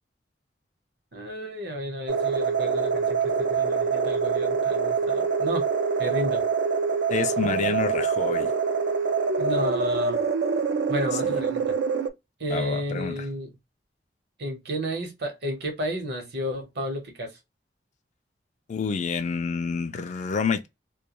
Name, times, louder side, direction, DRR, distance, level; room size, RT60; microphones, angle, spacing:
voice 1, 1.1-5.6 6.0-6.4 9.4-10.2 10.9-11.8 12.4-13.6 14.4-17.4, equal, 65° right, 0.9 m, -32 dB
sound 1, 2.1-12.1, right 5 dB, 85° right, 0.4 m, -25 dB
voice 2, 7.1-8.5 12.5-13.2 18.7-20.7, left 5 dB, 45° left, 0.4 m, -28 dB
2.2 x 2.2 x 2.8 m
head